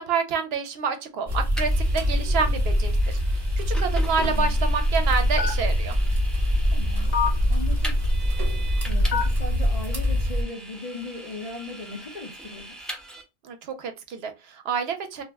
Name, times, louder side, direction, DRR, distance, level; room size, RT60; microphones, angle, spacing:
voice 1, 0.0-6.0 13.4-15.2, right 5 dB, 75° right, 0.8 m, -28 dB
sound 1, 1.3-10.4, equal, 40° right, 0.8 m, -25 dB
Vehicle, 1.6-13.2, right 1 dB, ahead, 0.4 m, -42 dB
Telephone, 4.2-9.5, left 1 dB, 60° left, 1.1 m, -26 dB
voice 2, 4.2-4.6 6.7-7.1 7.5-8.0 8.8-13.0, left 3 dB, 40° left, 0.7 m, -38 dB
2.4 x 2.0 x 3.3 m
omnidirectional pair, 1.1 m